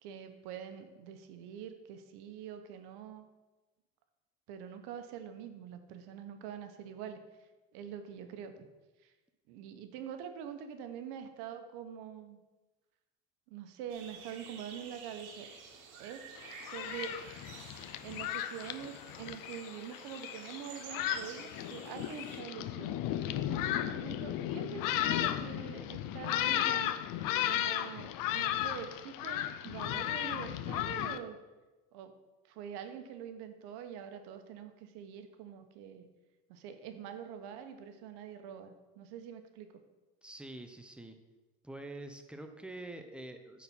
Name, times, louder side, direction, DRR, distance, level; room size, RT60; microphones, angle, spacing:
voice 1, 0.0-3.3 4.5-7.2 7.7-8.7 9.0-9.1 9.5-12.4 13.5-15.5 16.0-16.3 16.6-17.2 18.0-23.0 23.2-26.9 27.5-31.4 31.9-32.1 32.5-36.1 36.5-39.7, right 8 dB, 70° right, 8 dB, 1.0 m, -45 dB
sound 1, 13.9-22.4, right 6 dB, 90° right, 1.2 m, -51 dB
Thunderstorm, 16.4-31.2, left 12 dB, 55° left, 0.5 m, -35 dB
voice 2, 40.2-41.2 41.6-43.6, right 2 dB, ahead, 5 dB, 0.6 m, -46 dB
8.9 x 4.2 x 5.6 m, 1.2 s
supercardioid pair, 100°, 41 cm